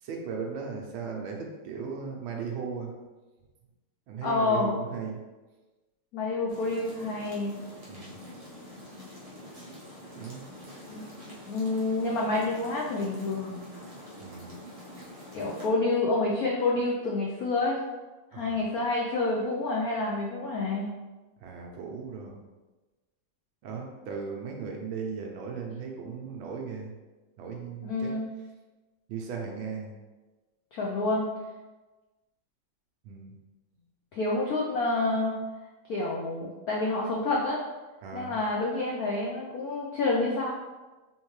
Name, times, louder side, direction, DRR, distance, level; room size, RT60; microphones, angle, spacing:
voice 1, 0.0-2.9 4.1-5.2 7.9-8.2 10.1-10.5 14.2-14.6 18.3-18.7 21.4-22.4 23.6-26.9 27.4-28.1 29.1-29.9 33.0-33.3 38.0-38.4, right 5 dB, 85° right, 1 dB, 1.5 m, -37 dB
voice 2, 4.2-4.8 6.1-7.5 10.9-13.6 15.3-17.8 18.3-20.9 27.8-28.2 30.7-31.3 34.1-35.4 35.9-37.6 38.1-40.5, left 2 dB, 80° left, -3 dB, 0.8 m, -28 dB
sound 1, 6.5-15.7, equal, 40° right, 0.5 m, -46 dB
4.0 x 3.6 x 3.1 m, 1.2 s
omnidirectional pair, 2.2 m